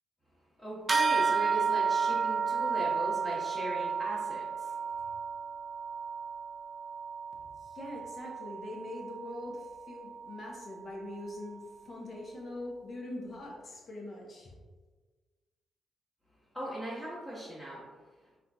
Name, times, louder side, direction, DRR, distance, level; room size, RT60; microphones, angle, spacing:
voice 1, 0.6-4.7 16.5-17.8, right 1 dB, 10° left, -10 dB, 1.1 m, -39 dB
sound 1, 0.9-10.7, right 5 dB, 40° right, 0.4 m, -32 dB
voice 2, 7.6-14.5, left 1 dB, 55° left, -1 dB, 0.8 m, -43 dB
3.7 x 2.4 x 2.2 m, 1.4 s
hypercardioid pair, 40°, 0 cm